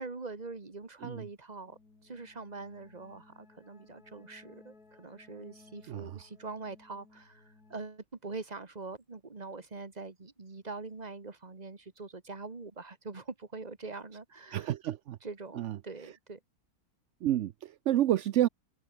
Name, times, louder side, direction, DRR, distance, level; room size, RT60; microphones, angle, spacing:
voice 1, 0.0-14.7 15.2-16.4, right 3 dB, 25° right, 1.8 m, -43 dB
sound 1, 1.6-7.9, left 3 dB, 65° left, 4.5 m, -60 dB
voice 2, 5.9-6.2 14.5-15.2 15.5-15.8 16.0-16.1 17.2-18.5, right 12 dB, 65° right, 0.7 m, -29 dB
omnidirectional pair, 1.7 m